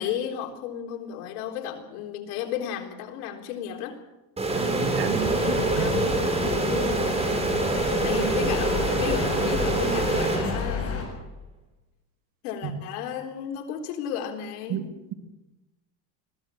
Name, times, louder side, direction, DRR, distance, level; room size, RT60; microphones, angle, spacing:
voice 1, 0.0-4.0 5.5-7.1 8.0-11.0 12.4-14.9, left 8 dB, 90° left, 3 dB, 3.9 m, -33 dB
sound 1, 4.4-11.0, right 2 dB, 15° right, 4.2 m, -25 dB
voice 2, 4.5-5.9 12.6-12.7 14.7-14.8, right 8 dB, 50° right, 7 dB, 2.3 m, -31 dB
sound 2, 5.1-11.0, left 5 dB, 30° left, 7.5 m, -32 dB
21.5 x 16.0 x 8.4 m, 1.0 s
cardioid pair, 130°, 43 cm